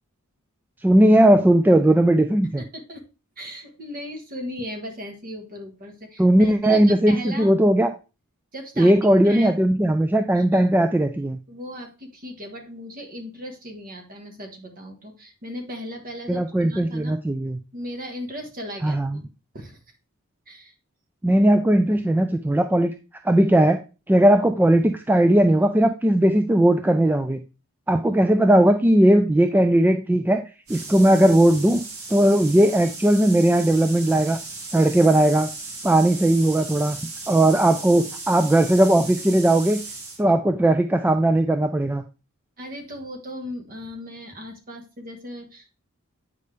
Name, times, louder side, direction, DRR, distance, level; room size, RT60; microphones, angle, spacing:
voice 1, 0.8-2.6 6.2-7.9 8.8-11.4 16.3-17.6 18.8-19.2 21.2-22.9 23.2-23.8 24.1-27.4 27.9-30.4 30.7-34.4 34.7-35.5 35.8-37.0 37.3-39.8 40.2-42.0, right 1 dB, 10° right, 7 dB, 0.3 m, -18 dB
voice 2, 2.6-3.0 3.4-7.5 8.5-8.9 9.2-9.5 10.3-10.7 11.5-17.2 17.7-19.3 19.5-19.8 20.5-20.7 40.3-40.4 42.6-45.8, equal, 40° right, 4 dB, 1.5 m, -37 dB
sound 1, 30.7-40.2, right 3 dB, 75° right, 2.1 m, -37 dB
8.3 x 5.3 x 3.3 m, 0.31 s
head